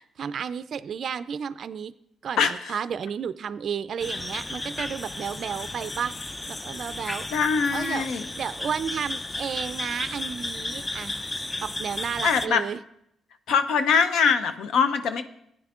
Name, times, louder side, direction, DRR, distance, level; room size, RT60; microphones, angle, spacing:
voice 1, 0.2-1.9 2.2-6.1 6.5-7.3 7.7-11.2 11.6-12.8, right 7 dB, 60° right, 14 dB, 0.3 m, -32 dB
voice 2, 2.4-2.8 7.3-8.2 12.2-12.6 13.5-15.2, left 6 dB, 75° left, 10 dB, 0.6 m, -23 dB
sound 1, 4.0-12.5, left 2 dB, 20° left, 0.4 m, -34 dB
15.5 x 9.5 x 2.4 m, 0.75 s
cardioid pair, 75°, 0 cm